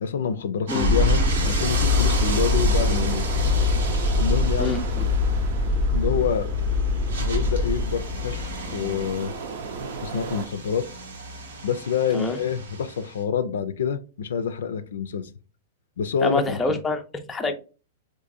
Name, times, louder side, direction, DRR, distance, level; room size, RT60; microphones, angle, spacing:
voice 1, 0.0-3.3 4.2-4.8 5.9-6.5 7.2-9.3 10.0-10.9 11.6-15.3 16.0-16.8, left 7 dB, 85° left, 0.4 m, -27 dB
car arriving at the crossways on a wet street, 0.7-13.2, right 3 dB, 85° right, 1.0 m, -35 dB
sound 1, 0.8-9.1, left 3 dB, 25° right, 0.7 m, -23 dB
sound 2, 1.6-10.4, right 5 dB, 65° right, 0.7 m, -36 dB
voice 2, 4.6-5.0 12.1-12.4 16.2-17.5, left 2 dB, 10° left, 0.4 m, -27 dB
3.7 x 2.6 x 2.6 m
hypercardioid pair, 145°, 0 cm